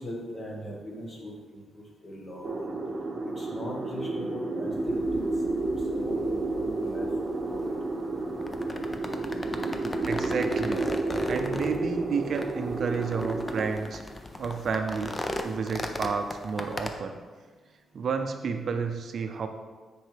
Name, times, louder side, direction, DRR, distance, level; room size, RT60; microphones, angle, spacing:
voice 1, 0.0-2.5 3.2-5.2 5.6-7.1 7.5-7.7, equal, 35° left, -2 dB, 1.8 m, -39 dB
sound 1, 2.4-13.7, right 2 dB, 35° right, 0.9 m, -31 dB
sound 2, 4.7-16.9, left 1 dB, 20° left, 0.6 m, -38 dB
voice 2, 10.0-10.9 11.2-14.0 14.4-15.2 15.4-17.2 17.9-19.5, right 5 dB, 60° right, 6 dB, 0.5 m, -31 dB
9.3 x 4.5 x 3.4 m, 1.4 s
cardioid pair, 100°, 0 cm